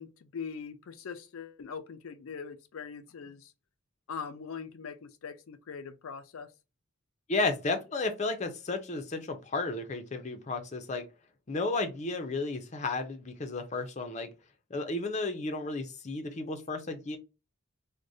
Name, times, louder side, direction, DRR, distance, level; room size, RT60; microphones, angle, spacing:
voice 1, 0.0-3.5 4.1-6.5, left 6 dB, 80° left, 0.4 m, -42 dB
voice 2, 7.3-11.0 11.5-14.3 14.7-17.2, left 3 dB, 35° left, 0.5 m, -33 dB
4.7 x 2.1 x 2.6 m
head